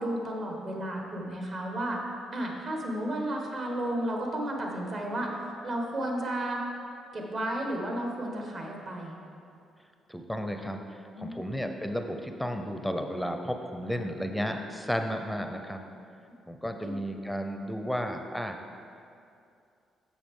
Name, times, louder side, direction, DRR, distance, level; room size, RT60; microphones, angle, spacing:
voice 1, 0.0-2.0 2.3-5.3 5.6-6.6 7.1-9.1 11.1-11.4 16.8-17.0, right 1 dB, 50° right, 0 dB, 1.3 m, -33 dB
voice 2, 10.1-10.8 11.2-15.8 16.5-18.6, equal, ahead, 5 dB, 0.5 m, -33 dB
8.0 x 6.5 x 3.7 m, 2.5 s
cardioid pair, 90°, 0 cm